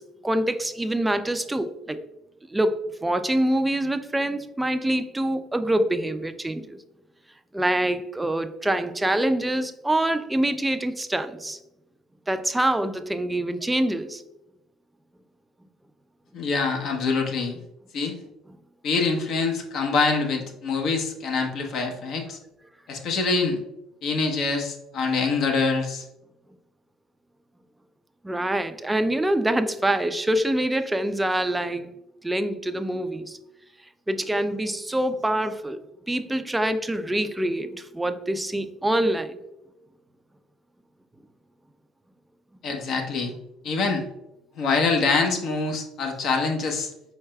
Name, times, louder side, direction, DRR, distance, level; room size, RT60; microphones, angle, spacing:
voice 1, 0.2-2.0 2.5-6.8 7.5-11.6 12.3-14.2 28.2-31.9 32.2-33.4 34.1-39.4, right 1 dB, 10° right, 9 dB, 0.4 m, -25 dB
voice 2, 16.3-17.6 17.9-18.2 18.8-22.4 22.9-23.6 24.0-26.0 42.6-43.3 43.6-44.1 44.6-46.9, left 4 dB, 60° left, 3 dB, 0.9 m, -25 dB
4.6 x 4.5 x 2.2 m, 0.91 s
supercardioid pair, 75°, 0 cm